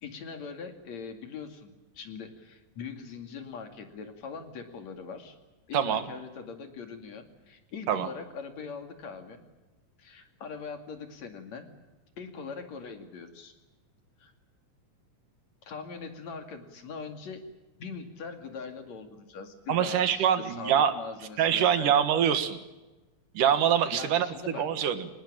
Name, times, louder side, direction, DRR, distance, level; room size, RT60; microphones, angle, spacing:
voice 1, 0.0-5.4 5.7-9.4 10.0-11.7 12.2-13.5 14.2-14.3 15.6-17.5 17.8-22.1 23.9-24.6, left 5 dB, 60° left, 6 dB, 3.6 m, -41 dB
voice 2, 5.7-6.0 7.9-8.1 19.7-20.9 21.4-22.6 23.3-24.3 24.6-25.1, right 9 dB, 85° right, 10 dB, 3.2 m, -24 dB
25.0 x 19.5 x 8.8 m, 1.1 s
omnidirectional pair, 3.6 m